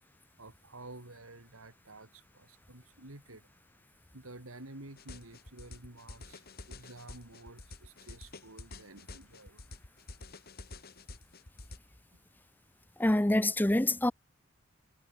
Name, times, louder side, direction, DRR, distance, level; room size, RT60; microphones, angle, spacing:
voice 1, 0.4-3.5 4.1-9.6, right 2 dB, 85° right, 3.5 m, -51 dB
sound 1, 5.0-11.8, left 2 dB, 45° left, 2.6 m, -49 dB
voice 2, 13.0-14.1, left 1 dB, 10° left, 0.6 m, -26 dB
head